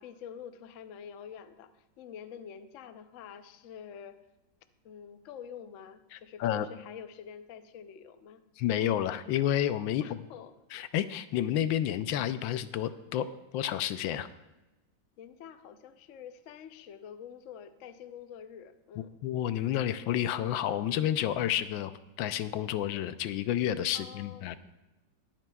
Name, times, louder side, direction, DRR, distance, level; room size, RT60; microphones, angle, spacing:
voice 1, 0.0-4.2 4.8-8.4 10.0-10.5 15.2-19.2 23.9-24.6, left 8 dB, 65° left, 10 dB, 0.7 m, -47 dB
voice 2, 8.6-10.2 10.7-13.3 13.5-14.3 19.2-21.9 22.2-24.6, left 11 dB, 85° left, 12 dB, 1.3 m, -30 dB
21.5 x 8.9 x 2.3 m, 1.0 s
omnidirectional pair, 2.0 m